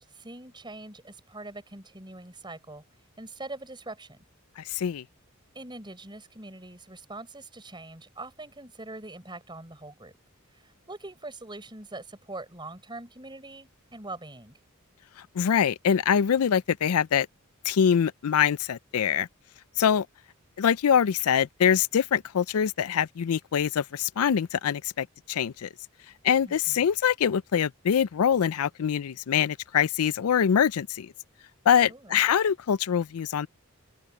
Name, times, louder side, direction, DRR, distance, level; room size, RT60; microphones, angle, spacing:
voice 1, 0.1-2.8 3.2-4.2 5.5-10.1 10.5-14.6 26.4-26.8 31.7-32.2, right 2 dB, 20° right, 6.7 m, -43 dB
voice 2, 4.6-5.0 15.4-17.3 17.6-19.3 19.8-20.1 20.6-25.7 26.2-31.1 31.7-33.5, left 8 dB, 85° left, 0.4 m, -24 dB
open air
head